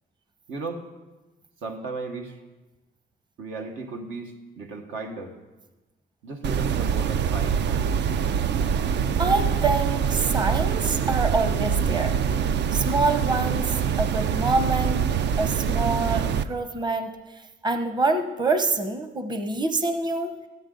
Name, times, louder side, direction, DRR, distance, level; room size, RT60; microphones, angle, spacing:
voice 1, 0.5-0.8 1.6-2.4 3.4-5.3 6.2-8.0, right 3 dB, 80° right, 3 dB, 1.4 m, -35 dB
sound 1, 6.4-16.4, right 7 dB, 60° right, 0.5 m, -24 dB
voice 2, 9.2-12.2 12.7-15.1 15.4-17.2 17.6-20.4, right 3 dB, 20° right, 7 dB, 0.8 m, -26 dB
13.5 x 9.9 x 3.9 m, 1.1 s
cardioid pair, 90°, 20 cm